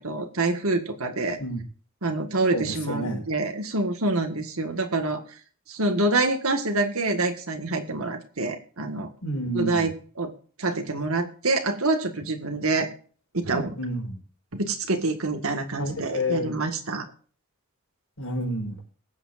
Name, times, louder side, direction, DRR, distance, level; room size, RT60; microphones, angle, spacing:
voice 1, 0.0-1.4 2.0-5.2 5.7-9.1 9.5-10.3 10.6-12.9 13.3-13.7 14.5-17.1, right 2 dB, 85° right, 5 dB, 1.9 m, -26 dB
voice 2, 2.5-3.2 9.2-9.9 13.5-14.2 15.8-16.5 18.2-18.8, equal, 85° left, 1 dB, 5.4 m, -29 dB
22.5 x 8.1 x 2.6 m, 0.42 s
head